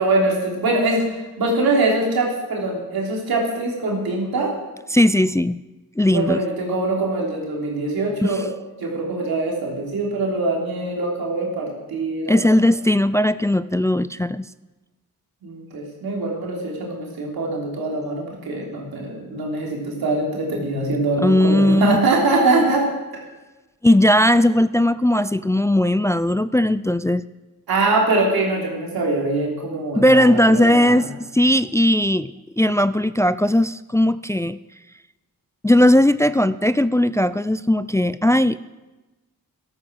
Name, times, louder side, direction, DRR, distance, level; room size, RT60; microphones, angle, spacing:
voice 1, 0.0-4.5 6.1-8.5 8.8-12.5 15.4-22.9 23.1-23.2 27.7-31.1, right 2 dB, 90° right, -1 dB, 3.5 m, -23 dB
voice 2, 4.9-5.6 6.0-6.4 8.2-8.4 12.3-14.5 21.2-22.0 23.8-27.2 30.0-32.3 32.6-34.6 35.6-38.6, left 1 dB, 10° left, 15 dB, 0.4 m, -18 dB
13.5 x 12.5 x 6.3 m, 1.1 s
cardioid pair, 60°, 35 cm